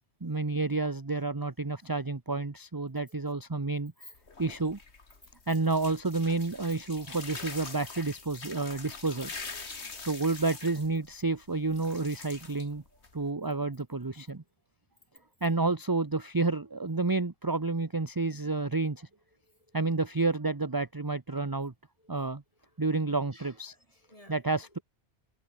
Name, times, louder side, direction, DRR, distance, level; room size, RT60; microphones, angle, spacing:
voice 1, 0.2-3.9 4.4-4.8 5.5-9.3 10.0-12.8 13.1-14.4 15.4-19.1 19.7-21.7 22.1-22.4 22.8-23.7 24.3-24.8, right 3 dB, 20° right, 0.9 m, -30 dB
sound 1, 4.1-13.3, left 4 dB, 75° left, 2.6 m, -44 dB
voice 2, 9.6-10.1 15.2-15.3 19.4-19.8 22.0-22.2 22.6-22.8 23.3-23.6 23.9-24.4, left 1 dB, 30° left, 8.0 m, -56 dB
omnidirectional pair, 1.2 m